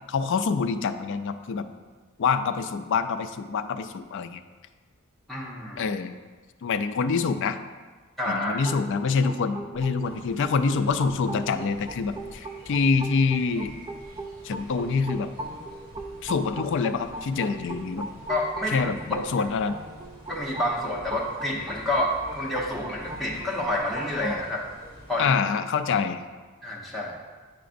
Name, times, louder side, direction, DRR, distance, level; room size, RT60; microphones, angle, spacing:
voice 1, 0.1-1.7 2.2-4.4 5.8-6.1 6.6-7.6 8.3-13.7 14.4-15.3 16.2-18.1 18.7-19.8 25.2-26.2, left 5 dB, 55° left, 10 dB, 0.3 m, -26 dB
voice 2, 5.3-5.8 8.2-8.6 18.3-18.8 19.1-19.2 20.3-24.6 25.1-25.3 26.6-27.2, left 1 dB, ahead, -6 dB, 0.9 m, -28 dB
sound 1, 8.6-24.4, right 2 dB, 20° right, 0.3 m, -39 dB
sound 2, 10.0-25.3, equal, 40° right, 1.3 m, -48 dB
9.4 x 5.0 x 2.5 m, 1.4 s
head